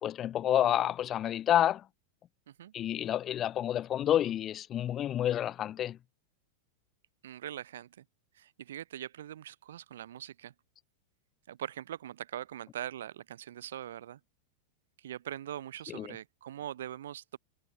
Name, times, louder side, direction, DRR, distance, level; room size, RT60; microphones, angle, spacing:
voice 1, 0.0-1.8 2.7-6.0 15.9-16.1, left 11 dB, 30° left, 1.5 m, -29 dB
voice 2, 7.2-8.0 8.4-10.5 11.5-14.2 15.0-17.4, right 11 dB, 60° right, 2.1 m, -42 dB
figure-of-eight pair, 90°, 0 cm